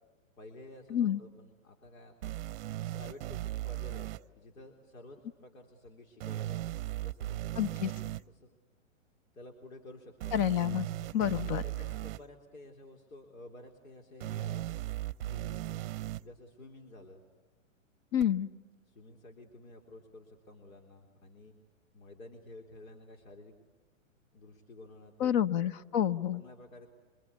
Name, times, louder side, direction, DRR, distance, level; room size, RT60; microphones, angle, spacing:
voice 1, 0.4-2.3 2.9-4.1 4.4-6.6 6.9-8.6 9.3-10.3 11.2-14.6 15.3-15.7 16.2-17.2 18.9-21.5 21.9-23.5 24.3-25.3 26.3-26.9, left 1 dB, 80° left, 2 dB, 3.9 m, -52 dB
sound 1, 2.2-4.2 6.2-8.2 10.2-12.2 14.2-16.2 18.2-18.3, right 15 dB, 45° right, 0.8 m, -37 dB
voice 2, 7.6-7.9 10.3-10.9 11.1-11.6 18.1-18.5 25.2-26.4, left 10 dB, 35° left, 13 dB, 0.9 m, -28 dB
27.5 x 25.0 x 8.4 m, 1.3 s
hypercardioid pair, 130°, 40 cm